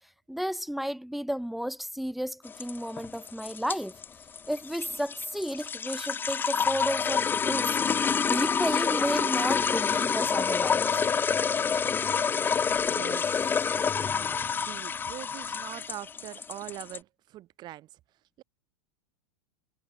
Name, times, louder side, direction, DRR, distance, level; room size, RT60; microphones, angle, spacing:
voice 1, 0.3-3.9 4.5-7.7 8.3-10.9, equal, ahead, 2.3 m, -32 dB
sound 1, 2.5-17.0, left 6 dB, 15° left, 0.8 m, -28 dB
voice 2, 12.8-14.0 14.5-18.0 18.4-18.5, right 14 dB, 40° right, 2.8 m, -43 dB
hypercardioid pair, 120°, 12 cm